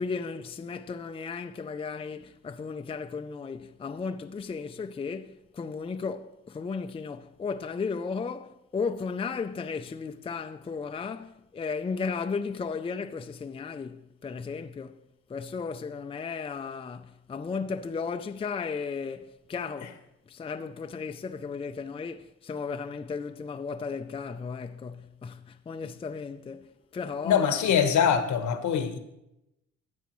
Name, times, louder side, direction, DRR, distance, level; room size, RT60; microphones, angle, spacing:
voice 1, 0.0-15.0 15.3-20.0 20.3-27.8, left 5 dB, 20° left, 0.4 m, -35 dB
voice 2, 27.2-29.0, left 7 dB, 70° left, 1.2 m, -24 dB
14.0 x 8.1 x 3.1 m
cardioid pair, 90°, 30 cm